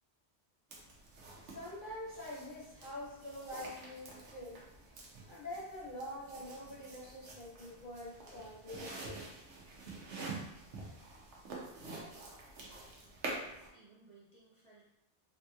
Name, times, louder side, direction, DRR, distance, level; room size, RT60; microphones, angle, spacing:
sound 1, 0.7-13.7, right 3 dB, 80° right, 1.0 m, -48 dB
voice 1, 1.4-4.6 5.3-9.3, left 1 dB, 45° left, -6 dB, 1.1 m, -45 dB
voice 2, 13.2-14.8, right 2 dB, 35° right, -8 dB, 0.6 m, -61 dB
3.5 x 2.8 x 2.3 m, 0.83 s
omnidirectional pair, 1.2 m